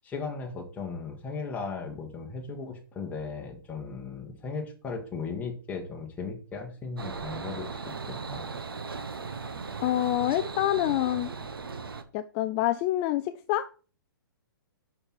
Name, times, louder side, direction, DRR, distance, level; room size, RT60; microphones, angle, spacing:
voice 1, 0.0-8.5, left 4 dB, 15° left, 0 dB, 1.6 m, -37 dB
sound 1, 7.0-12.0, right 4 dB, 90° right, 1.0 m, -37 dB
voice 2, 9.8-11.3 12.1-13.7, left 14 dB, 30° left, 11 dB, 0.4 m, -26 dB
6.5 x 6.0 x 4.7 m, 0.38 s
hypercardioid pair, 135°, 12 cm